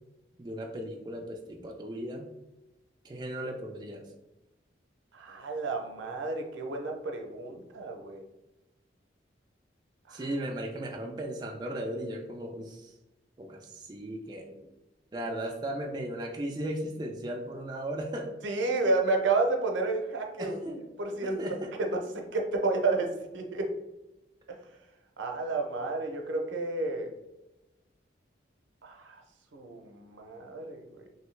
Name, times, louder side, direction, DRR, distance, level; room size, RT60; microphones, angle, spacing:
voice 1, 0.4-2.3 3.0-4.1 10.1-12.9 13.4-14.6 15.1-18.3 20.4-20.8 21.2-21.7, right 1 dB, 20° right, 1 dB, 0.3 m, -36 dB
voice 2, 5.1-8.2 10.1-10.2 18.4-20.6 21.0-21.4 21.8-22.0 22.3-23.7 24.5-24.6 25.2-27.1 28.8-29.2 29.5-31.1, right 3 dB, 90° right, 3 dB, 0.6 m, -31 dB
3.0 x 2.7 x 3.1 m, 0.96 s
head